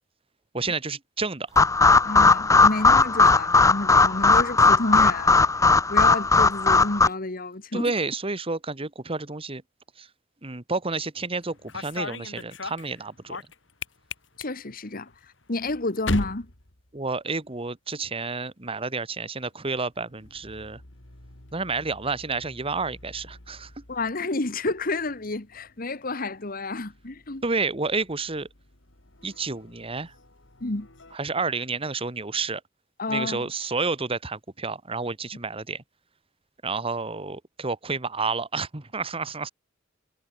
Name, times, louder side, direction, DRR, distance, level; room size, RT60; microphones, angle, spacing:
voice 1, 0.5-1.5 7.7-9.6 10.0-10.1 10.4-13.4 16.9-20.8 21.5-23.7 27.4-28.5 29.2-30.1 31.1-32.6 33.1-35.8 36.6-39.5, right 4 dB, 30° right, 1.5 m, -30 dB
sound 1, 1.6-7.1, left 3 dB, 15° left, 0.6 m, -18 dB
voice 2, 2.0-5.4 5.9-7.9 14.4-15.1 15.5-16.5 23.9-27.4 30.6-30.9 33.0-33.5, left 2 dB, 50° left, 1.6 m, -30 dB
sound 2, 11.4-17.6 17.9-18.4 19.5-31.2, left 2 dB, 70° left, 3.6 m, -41 dB
head